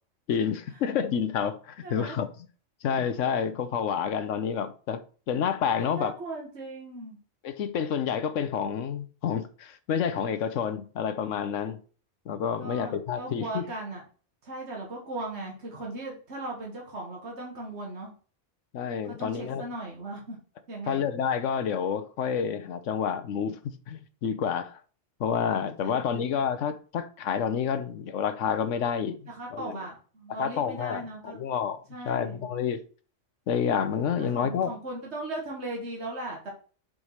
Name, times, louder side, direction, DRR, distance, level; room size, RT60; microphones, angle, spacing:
voice 1, 0.3-2.5 2.8-5.0 5.3-6.1 7.4-11.8 12.3-13.7 18.7-19.6 20.9-23.6 23.9-24.8 25.2-29.9 30.3-31.8 32.0-32.8 33.5-34.7, left 7 dB, 90° left, 1.1 m, -29 dB
voice 2, 1.8-2.2 5.8-7.2 12.6-14.0 14.4-18.1 19.1-20.4 20.7-21.0 25.8-26.2 29.3-31.4 31.9-32.5 34.2-36.5, right 2 dB, 65° right, 1.8 m, -38 dB
5.0 x 4.8 x 5.5 m
omnidirectional pair, 1.2 m